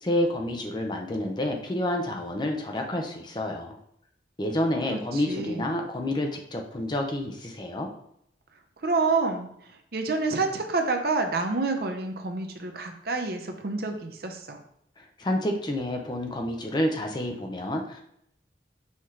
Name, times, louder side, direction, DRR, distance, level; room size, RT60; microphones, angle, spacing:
voice 1, 0.0-3.8 4.4-7.9 15.0-18.0, left 1 dB, 25° left, 2 dB, 0.6 m, -29 dB
voice 2, 4.9-5.7 8.8-9.5 9.9-14.6, right 3 dB, 60° right, 4 dB, 0.6 m, -28 dB
5.7 x 2.9 x 3.2 m, 0.72 s
head